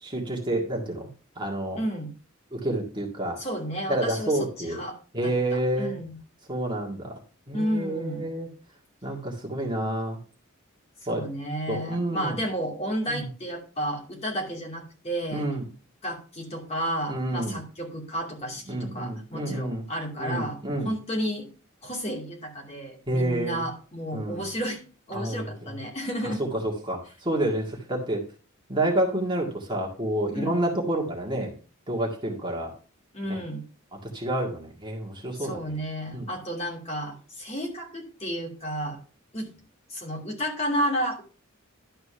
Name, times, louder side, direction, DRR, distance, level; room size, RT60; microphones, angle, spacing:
voice 1, 0.0-1.1 1.4-1.8 2.5-3.4 3.9-4.8 5.1-6.0 6.5-7.1 7.5-8.5 9.0-10.2 11.1-11.2 11.7-12.4 13.1-13.3 15.3-15.6 17.1-17.6 18.7-19.8 20.2-20.9 23.1-23.7 24.1-24.4 25.1-25.7 26.4-28.2 28.7-31.5 31.9-32.7 33.3-33.4 34.1-35.7 36.1-36.3, right 1 dB, 20° right, 0 dB, 1.9 m, -29 dB
voice 2, 1.8-2.1 3.4-5.0 5.2-6.2 7.5-8.3 11.1-15.5 16.0-20.6 20.8-21.5 21.8-24.8 25.1-26.4 30.3-30.6 33.1-33.6 35.4-39.0 39.3-39.5 39.9-41.2, equal, 30° left, -1 dB, 2.7 m, -32 dB
11.5 x 4.4 x 5.6 m, 0.38 s
head